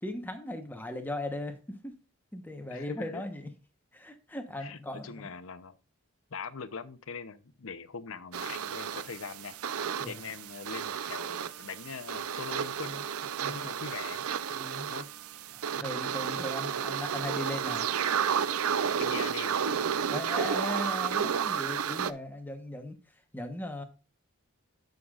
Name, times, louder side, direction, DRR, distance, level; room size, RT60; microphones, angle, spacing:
voice 1, 0.0-2.0 2.3-3.5 3.9-5.2 10.0-10.3 13.4-13.7 14.5-14.9 15.5-17.9 20.1-23.8, left 1 dB, 10° left, 1.0 m, -38 dB
voice 2, 2.7-3.2 4.6-5.8 6.3-9.6 10.1-13.1 13.5-14.3 14.9-15.1 19.0-19.6, left 5 dB, 75° left, 0.7 m, -42 dB
sound 1, 8.3-22.1, right 7 dB, 90° right, 0.5 m, -32 dB
11.0 x 6.5 x 2.4 m
head